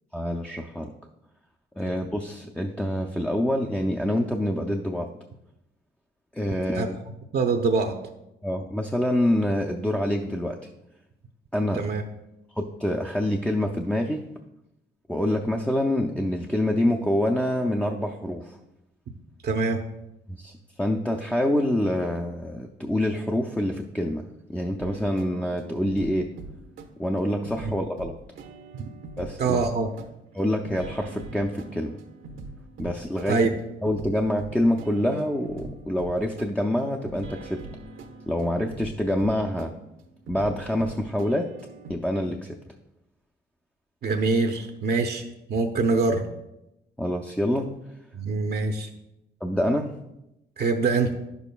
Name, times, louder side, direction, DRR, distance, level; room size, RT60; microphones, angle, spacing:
voice 1, 0.1-0.9 1.8-5.1 6.3-7.0 8.4-10.7 11.5-11.9 12.6-14.3 15.1-18.6 20.3-26.3 27.0-28.2 29.2-29.6 30.3-32.0 32.8-37.7 38.3-39.7 40.3-41.5 41.9-42.6 47.0-47.8 49.4-50.0, left 1 dB, 5° left, 0 dB, 0.5 m, -26 dB
voice 2, 7.3-7.9 11.7-12.0 19.4-19.8 29.4-29.9 33.3-33.5 44.0-45.2 45.5-46.2 48.1-48.9 50.6-51.1, right 4 dB, 55° right, 4 dB, 0.7 m, -24 dB
sound 1, 24.8-41.9, right 3 dB, 80° right, 1.0 m, -43 dB
10.0 x 7.0 x 2.3 m, 0.89 s
cardioid pair, 90°, 20 cm